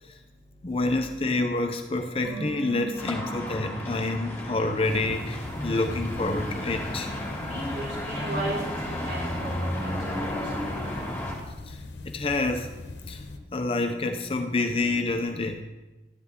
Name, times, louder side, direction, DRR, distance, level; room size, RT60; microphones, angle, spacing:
voice 1, 0.6-7.1 11.6-12.7 13.1-13.2 13.5-15.6, left 2 dB, 30° left, 6 dB, 0.6 m, -28 dB
sound 1, 2.2-5.5 5.8-5.9, right 5 dB, 50° right, 4.0 m, -42 dB
sound 2, 3.0-11.3, left 1 dB, 15° left, 2.4 m, -33 dB
sound 3, 4.8-13.4, left 2 dB, 80° left, 0.9 m, -41 dB
voice 2, 7.3-9.5 9.8-9.9 10.2-10.7, right 1 dB, 85° right, -7 dB, 4.0 m, -35 dB
12.5 x 10.0 x 3.7 m, 1.1 s
head